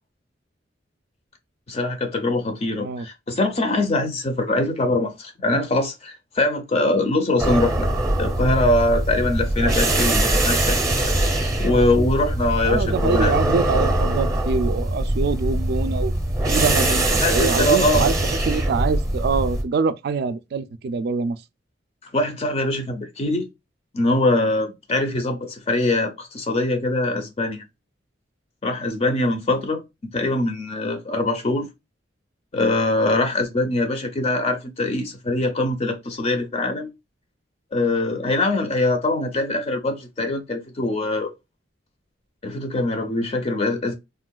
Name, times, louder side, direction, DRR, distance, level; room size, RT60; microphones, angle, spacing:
voice 1, 1.7-7.9 8.2-11.1 11.6-13.3 17.2-18.1 22.1-23.5 23.9-27.6 28.6-31.7 32.5-36.9 37.7-41.3 42.4-43.9, left 2 dB, 35° left, 0.5 m, -23 dB
sound 1, 7.4-19.6, right 1 dB, 15° right, 0.6 m, -22 dB
voice 2, 12.6-16.1 16.5-18.1 18.5-21.4, right 4 dB, 55° right, 0.3 m, -24 dB
3.6 x 2.3 x 2.2 m
head